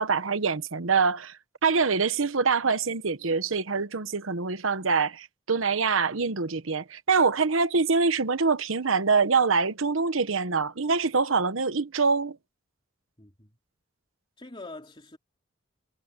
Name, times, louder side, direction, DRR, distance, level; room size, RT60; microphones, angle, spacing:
voice 1, 0.0-12.4, right 4 dB, 85° right, 1.1 m, -25 dB
voice 2, 13.2-13.5 14.4-15.2, left 2 dB, 25° left, 3.2 m, -44 dB
head